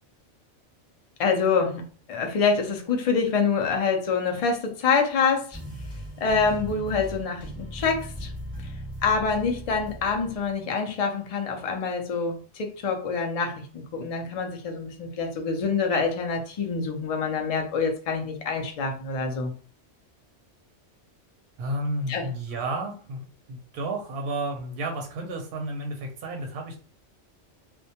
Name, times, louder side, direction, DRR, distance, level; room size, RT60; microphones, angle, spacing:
voice 1, 1.2-1.8 2.1-5.6 6.2-8.3 9.0-19.5 22.1-22.2, left 5 dB, 60° left, 2 dB, 0.3 m, -26 dB
sound 1, 5.5-10.5, equal, ahead, 1.0 m, -38 dB
voice 2, 21.6-26.8, right 1 dB, 60° right, 2 dB, 0.7 m, -32 dB
2.2 x 2.1 x 2.7 m, 0.40 s
omnidirectional pair, 1.2 m